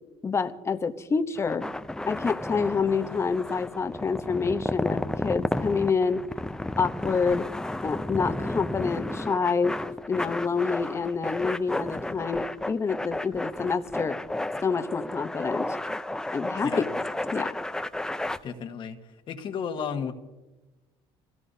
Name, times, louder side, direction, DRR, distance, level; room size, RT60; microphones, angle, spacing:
voice 1, 0.2-1.7 2.1-6.2 6.8-7.5 7.8-9.8 10.1-14.2 14.6-15.7 16.3-16.9 17.3-17.5, left 5 dB, 25° left, 9 dB, 0.9 m, -27 dB
sound 1, 1.4-18.4, left 1 dB, 5° left, 0.6 m, -32 dB
voice 2, 18.4-19.0 19.3-20.1, left 7 dB, 50° left, 6 dB, 1.5 m, -33 dB
26.0 x 17.0 x 2.8 m, 1.1 s
cardioid pair, 105°, 11 cm